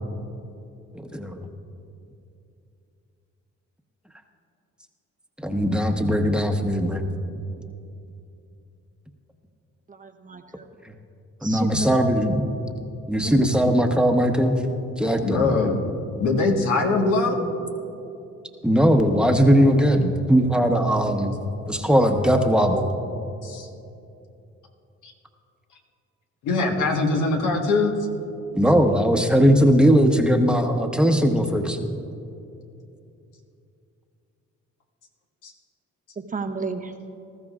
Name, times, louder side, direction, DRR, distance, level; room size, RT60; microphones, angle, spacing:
voice 1, 1.1-1.5 5.4-7.1 11.4-12.4 13.1-14.6 15.0-15.7 18.6-21.4 21.7-22.9 28.5-31.8, equal, 5° right, 4 dB, 1.0 m, -19 dB
voice 2, 9.9-10.7 11.4-12.0 13.2-13.7 36.2-36.9, right 4 dB, 25° right, 6 dB, 0.7 m, -33 dB
voice 3, 15.2-15.8 16.2-17.4 23.4-23.7 25.0-25.1 26.4-28.0 35.4-35.5, left 3 dB, 80° left, 1 dB, 1.5 m, -22 dB
19.5 x 14.0 x 2.4 m, 2.7 s
cardioid pair, 90°, 30 cm